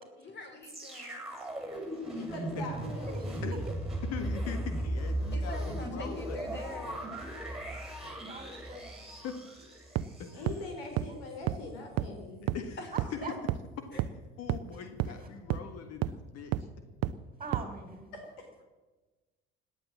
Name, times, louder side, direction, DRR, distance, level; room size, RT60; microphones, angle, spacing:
voice 1, 0.2-1.4 5.3-7.1 12.8-12.9 13.9-14.1, left 1 dB, 35° left, 5 dB, 4.3 m, -44 dB
sound 1, 0.6-10.7 11.3-11.4, right 1 dB, ahead, 6.5 m, -37 dB
voice 2, 2.1-3.5 10.3-12.5 18.1-18.4, left 2 dB, 75° left, 3 dB, 4.1 m, -42 dB
voice 3, 4.0-6.4 8.1-8.7 9.2-9.4 10.2-10.5 12.4-12.8 14.4-16.5, left 6 dB, 55° left, 8 dB, 1.7 m, -42 dB
voice 4, 8.0-9.0 11.1-11.2 13.2-13.3 17.4-18.1, right 4 dB, 15° right, 6 dB, 3.6 m, -43 dB
sound 2, 10.0-10.1 10.5-10.6 11.0-11.1 11.5-11.6 12.0-12.1 12.5-12.6 13.0-13.1 13.5-13.6 14.0-14.1 14.5-14.6 15.0-15.1 15.5-15.6 16.0-16.1 16.5-16.6 17.0-17.1 17.5-17.6, right 14 dB, 60° right, 0.8 m, -29 dB
18.0 x 10.0 x 7.3 m, 1.2 s
hypercardioid pair, 65°, 30 cm